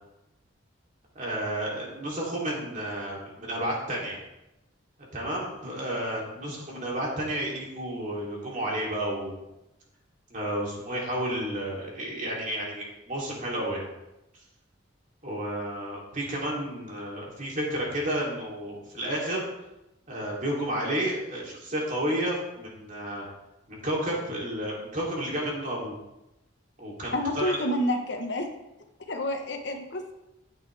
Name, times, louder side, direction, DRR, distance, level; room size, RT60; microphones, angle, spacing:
voice 1, 1.1-4.2 5.1-9.3 10.3-13.9 15.2-19.4 20.1-23.2 23.7-25.9 26.8-27.6, right 1 dB, 40° right, -3 dB, 3.3 m, -31 dB
voice 2, 27.1-28.5 29.1-30.1, left 1 dB, 55° left, 4 dB, 1.2 m, -29 dB
13.5 x 8.8 x 3.5 m, 0.93 s
head